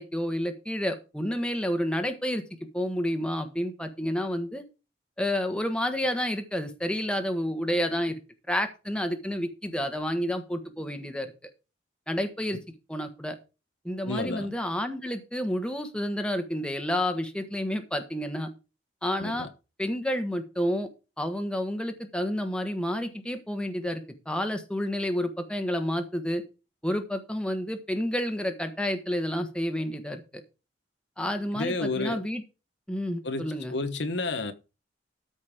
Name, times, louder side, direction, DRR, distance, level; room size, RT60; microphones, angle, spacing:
voice 1, 0.0-2.4 2.7-4.6 5.2-8.2 8.5-11.3 12.1-12.6 12.9-13.4 13.8-18.5 19.0-19.5 19.8-20.9 21.2-26.4 26.8-30.4 31.2-32.4 32.9-33.7, equal, 5° left, 1.4 m, -30 dB
voice 2, 14.0-14.5 19.2-19.5 31.5-32.2 33.2-34.5, left 3 dB, 70° left, 1.2 m, -31 dB
13.0 x 5.4 x 5.0 m
head